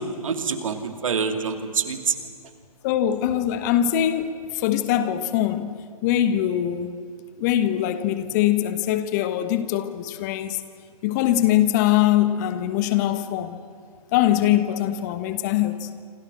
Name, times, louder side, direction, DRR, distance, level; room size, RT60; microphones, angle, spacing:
voice 1, 0.0-2.1, right 5 dB, 55° right, 2.7 m, -26 dB
voice 2, 2.8-6.9 7.4-10.6 11.0-13.6 14.1-15.9, left 12 dB, 30° left, 1.2 m, -22 dB
27.5 x 25.5 x 6.2 m
figure-of-eight pair, 130°, 20 cm